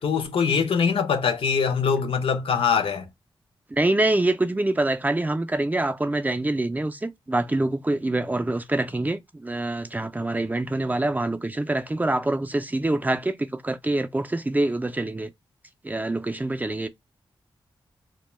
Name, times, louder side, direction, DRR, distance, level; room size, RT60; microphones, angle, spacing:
voice 1, 0.0-3.1, left 6 dB, 80° left, 0.5 m, -23 dB
voice 2, 3.7-15.3 15.8-16.9, right 2 dB, 20° right, 0.4 m, -25 dB
2.1 x 2.1 x 3.1 m
cardioid pair, 60°, 9 cm